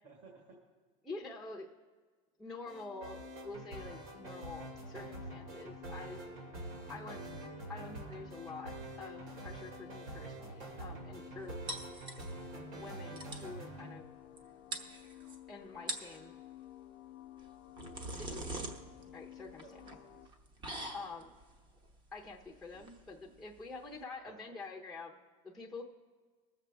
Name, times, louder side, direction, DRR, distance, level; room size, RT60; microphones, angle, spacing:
voice 1, 0.0-0.6 19.6-20.3 24.2-24.6, right 4 dB, 40° right, -1 dB, 1.9 m, -57 dB
voice 2, 1.0-1.7 2.4-6.2 6.9-7.3 7.7-11.6 12.7-14.1 15.5-16.4 18.1-18.8 19.1-19.6 20.9-21.3 22.1-25.8, left 3 dB, ahead, -2 dB, 0.7 m, -47 dB
sound 1, 2.6-20.3, left 13 dB, 65° left, 0.5 m, -54 dB
sound 2, 2.7-13.9, right 3 dB, 80° right, 2.7 m, -46 dB
sound 3, 11.7-12.6 12.9-13.0 13.2-13.5 14.4-14.5 14.7-15.4 15.7-16.2 17.4-24.0, right 2 dB, 25° right, 1.0 m, -44 dB
21.0 x 7.4 x 3.4 m, 1.5 s
supercardioid pair, 150°, 18 cm